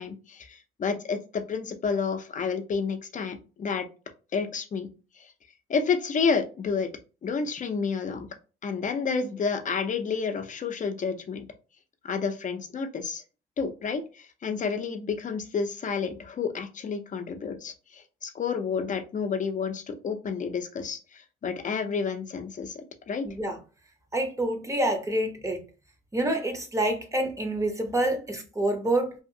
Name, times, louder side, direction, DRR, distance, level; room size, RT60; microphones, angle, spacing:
voice 1, 0.0-3.9 4.3-4.9 5.2-5.3 5.7-6.9 7.2-8.3 8.6-11.5 12.0-13.2 13.6-23.3, left 5 dB, 40° left, 0.5 m, -30 dB
voice 2, 23.2-23.6 24.1-25.6 26.1-29.1, right 1 dB, 15° right, 0.7 m, -27 dB
2.7 x 2.4 x 2.6 m
cardioid pair, 90°, 20 cm